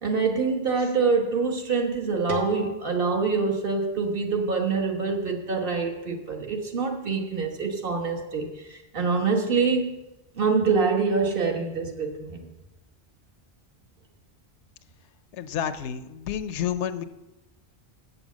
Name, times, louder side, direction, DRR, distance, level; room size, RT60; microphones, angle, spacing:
voice 1, 0.0-9.9 10.4-12.5, right 4 dB, 55° right, 3 dB, 1.4 m, -25 dB
sound 1, 2.3-5.1, left 1 dB, 75° right, 1.6 m, -39 dB
voice 2, 15.4-17.0, left 9 dB, 85° left, 12 dB, 0.9 m, -30 dB
8.2 x 6.8 x 7.2 m, 1.0 s
omnidirectional pair, 1.1 m